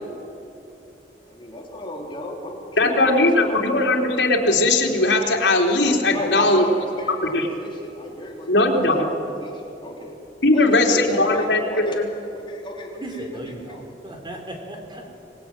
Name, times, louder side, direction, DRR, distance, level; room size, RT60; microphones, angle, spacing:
voice 1, 1.3-3.9 6.1-10.1 10.5-12.0 12.3-13.8, left 1 dB, 30° left, -1 dB, 3.5 m, -34 dB
voice 2, 2.8-6.6 7.1-7.5 8.5-9.1 10.4-12.1, left 2 dB, 85° left, -1 dB, 3.7 m, -19 dB
voice 3, 13.0-15.1, right 1 dB, 25° right, 3 dB, 3.8 m, -36 dB
25.5 x 21.0 x 9.1 m, 2.8 s
head